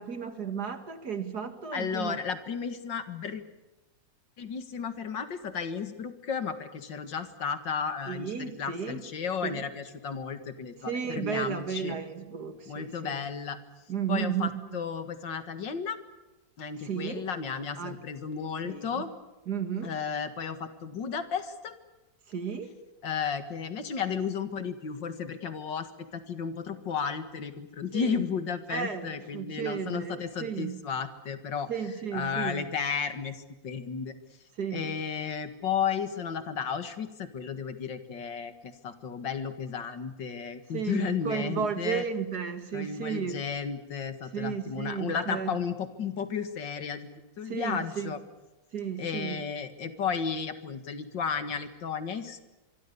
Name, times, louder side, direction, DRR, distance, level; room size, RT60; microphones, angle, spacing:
voice 1, 0.0-2.2 8.1-9.0 9.4-9.6 10.8-13.2 13.9-14.8 16.8-17.3 17.8-18.0 18.6-19.1 19.5-19.9 22.3-22.8 27.9-28.2 28.7-30.8 31.7-32.7 34.6-34.9 40.7-43.4 44.3-45.6 47.5-48.2 48.7-49.4, right 7 dB, 55° right, 9 dB, 2.4 m, -34 dB
voice 2, 1.7-3.4 4.4-12.0 12.7-13.6 14.1-16.0 16.6-19.1 19.8-21.7 23.0-31.7 32.1-34.1 34.7-42.0 42.7-47.1 47.4-48.2 49.0-52.4, left 6 dB, 70° left, 10 dB, 2.4 m, -33 dB
26.0 x 23.5 x 6.9 m, 1.1 s
omnidirectional pair, 2.0 m